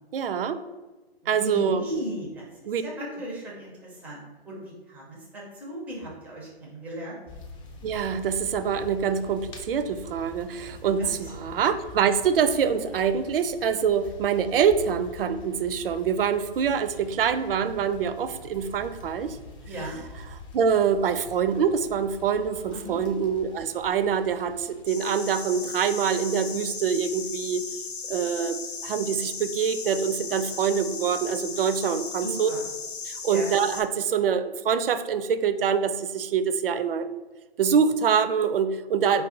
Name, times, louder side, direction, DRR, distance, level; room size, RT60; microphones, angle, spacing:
voice 1, 0.1-0.6 1.3-1.8 2.7-2.8 7.8-19.4 20.5-27.6 28.1-28.6 28.8-32.5 33.0-37.1 37.6-39.2, right 7 dB, 60° right, 11 dB, 0.5 m, -25 dB
voice 2, 1.2-2.5 2.8-7.2 11.0-11.5 19.7-20.0 22.7-23.0 32.2-32.6 33.3-33.5 39.1-39.2, right 1 dB, 5° right, -3 dB, 0.5 m, -37 dB
sound 1, 7.3-24.8, left 3 dB, 30° left, 0.7 m, -45 dB
sound 2, 24.9-33.8, left 5 dB, 75° left, 0.8 m, -36 dB
4.6 x 2.3 x 3.7 m, 1.2 s
hypercardioid pair, 135°, 31 cm